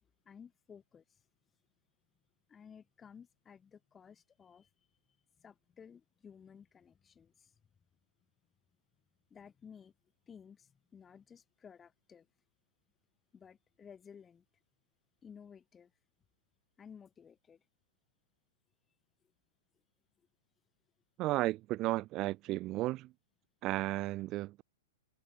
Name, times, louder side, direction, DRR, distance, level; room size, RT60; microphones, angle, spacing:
voice 1, 0.2-1.0 2.5-4.7 5.4-7.5 9.3-9.9 10.3-12.3 13.3-14.4 15.2-15.9 16.8-17.6, left 7 dB, 15° left, 1.0 m, -55 dB
voice 2, 21.2-23.1 23.6-24.6, right 17 dB, 35° right, 0.4 m, -34 dB
figure-of-eight pair, 105°, 0 cm